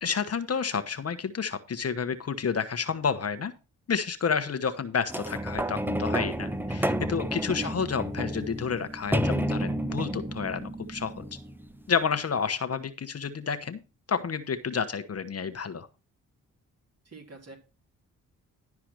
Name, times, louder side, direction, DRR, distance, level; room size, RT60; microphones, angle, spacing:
voice 1, 0.0-3.5 3.9-11.2 11.9-13.8 14.1-15.9, left 6 dB, 45° left, 10 dB, 1.2 m, -30 dB
sound 1, 5.1-11.9 12.5-12.6, equal, 5° right, 0.9 m, -31 dB
voice 2, 17.0-17.6, right 4 dB, 45° right, 2 dB, 3.4 m, -43 dB
12.0 x 4.8 x 6.1 m, 0.31 s
supercardioid pair, 60°, 34 cm